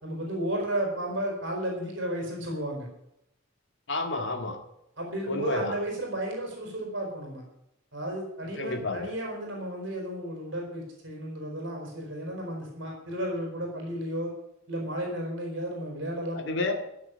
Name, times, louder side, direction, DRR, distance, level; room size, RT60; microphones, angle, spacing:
voice 1, 0.0-2.9 5.0-7.4 7.9-14.3 14.7-16.7, right 1 dB, 65° right, 0 dB, 4.3 m, -33 dB
voice 2, 3.9-4.6 5.3-5.8 8.6-9.1 16.3-16.7, left 2 dB, 65° left, 5 dB, 2.1 m, -30 dB
14.5 x 6.8 x 9.6 m, 0.83 s
head